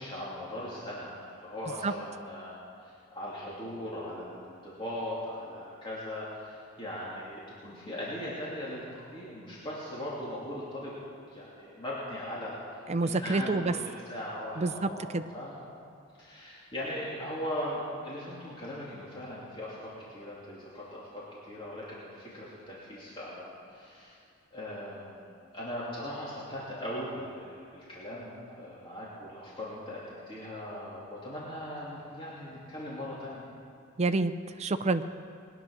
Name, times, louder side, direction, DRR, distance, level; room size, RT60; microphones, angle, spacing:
voice 1, 0.0-10.9 11.2-12.6 13.0-15.7 16.2-24.2 24.5-33.4, left 1 dB, 25° left, -7 dB, 2.7 m, -39 dB
voice 2, 12.9-13.7 14.6-15.2 34.0-34.3 34.6-35.0, right 3 dB, 30° right, 9 dB, 0.6 m, -28 dB
20.5 x 9.8 x 6.4 m, 2.4 s
head